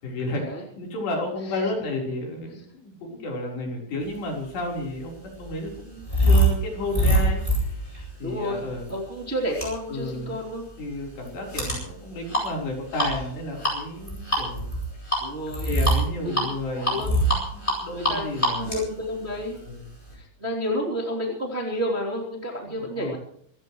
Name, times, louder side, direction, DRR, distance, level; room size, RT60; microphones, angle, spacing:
voice 1, 0.0-0.5 0.8-7.9 8.2-8.9 9.9-10.4 10.8-15.2 15.6-18.8 19.6-19.9 22.6-23.2, left 2 dB, 60° left, 0 dB, 6.1 m, -32 dB
sound 1, 4.5-20.1, right 1 dB, 10° left, 7.8 m, -26 dB
voice 2, 8.2-8.6 8.9-10.7 15.2-15.7 16.2-16.4 16.7-17.1 18.1-19.6 20.1-23.2, equal, 15° right, -2 dB, 2.5 m, -30 dB
27.0 x 15.5 x 3.2 m, 0.66 s
omnidirectional pair, 5.8 m